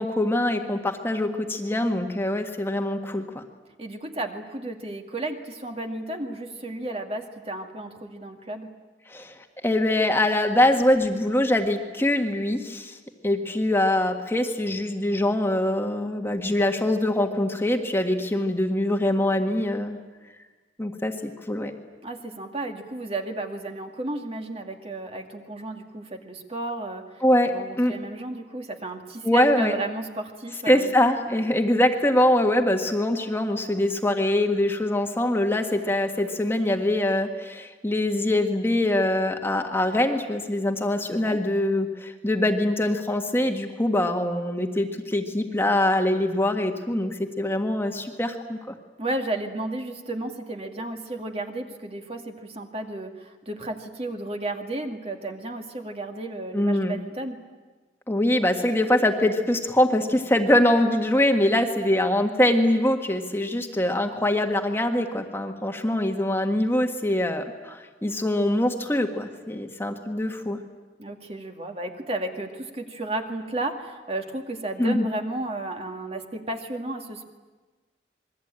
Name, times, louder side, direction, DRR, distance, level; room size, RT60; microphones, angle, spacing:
voice 1, 0.0-3.4 9.1-9.4 9.6-13.0 13.2-20.0 20.8-21.7 27.2-28.0 29.2-29.7 30.7-48.7 56.5-57.0 58.1-70.6 74.8-75.1, left 1 dB, 15° left, 4 dB, 1.7 m, -23 dB
voice 2, 3.8-8.7 22.0-27.0 27.4-30.9 41.2-41.4 49.0-57.4 71.0-77.3, right 2 dB, 35° right, 4 dB, 2.1 m, -33 dB
27.0 x 22.0 x 8.9 m, 1.3 s
head